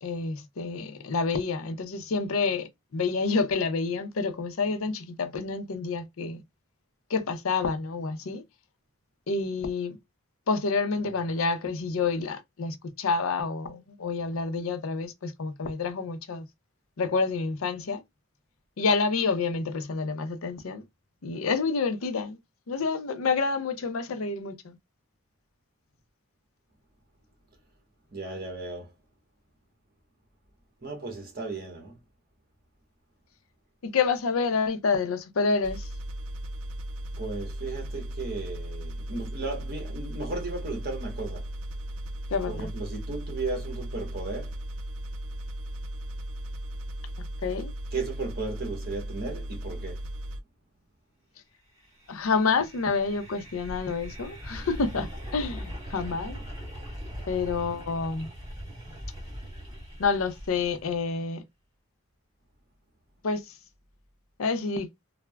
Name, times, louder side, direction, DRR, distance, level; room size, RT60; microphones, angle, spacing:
voice 1, 0.0-6.4 7.1-8.4 9.3-10.0 10.5-16.5 17.0-18.0 18.8-20.8 21.2-22.4 22.7-24.8 33.8-35.9 42.3-42.7 47.4-47.7 52.1-56.4 57.3-58.3 60.0-61.4 63.2-63.4 64.4-64.9, left 4 dB, 90° left, 0.6 m, -28 dB
voice 2, 28.1-28.9 30.8-31.9 37.2-41.5 42.5-44.6 47.9-50.0, right 3 dB, 50° right, 1.1 m, -35 dB
sound 1, 35.6-50.4, right 1 dB, 90° right, 0.3 m, -36 dB
sound 2, 51.8-61.0, equal, 20° right, 1.3 m, -40 dB
3.3 x 2.1 x 2.2 m
head